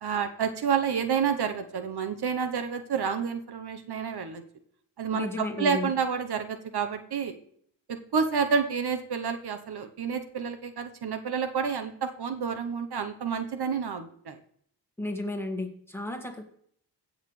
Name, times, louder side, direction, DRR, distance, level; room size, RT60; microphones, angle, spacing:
voice 1, 0.0-4.4 5.0-7.3 7.9-14.4, right 6 dB, 70° right, 8 dB, 1.0 m, -29 dB
voice 2, 5.1-5.9 15.0-16.4, left 1 dB, 5° left, 3 dB, 1.8 m, -33 dB
16.5 x 6.6 x 3.2 m, 0.64 s
wide cardioid pair, 90°, 41 cm